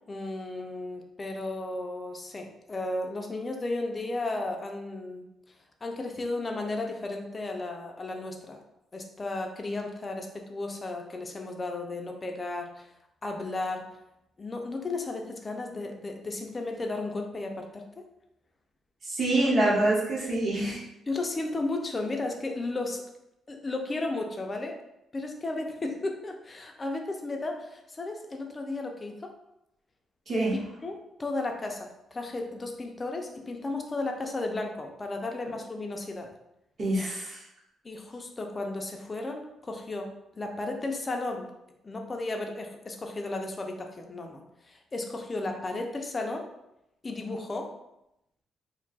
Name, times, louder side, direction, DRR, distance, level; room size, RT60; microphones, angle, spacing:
voice 1, 0.1-5.2 5.8-8.6 8.9-12.9 13.2-13.9 14.4-18.0 19.3-19.6 21.1-23.0 23.5-24.8 25.1-29.3 30.5-36.3 37.8-41.5 41.8-46.5 47.0-47.7, left 2 dB, 20° left, 3 dB, 0.4 m, -34 dB
voice 2, 19.0-20.8 30.3-30.5 36.8-37.4, right 2 dB, 35° right, -4 dB, 0.9 m, -26 dB
2.5 x 2.2 x 3.9 m, 0.86 s
cardioid pair, 155°, 0 cm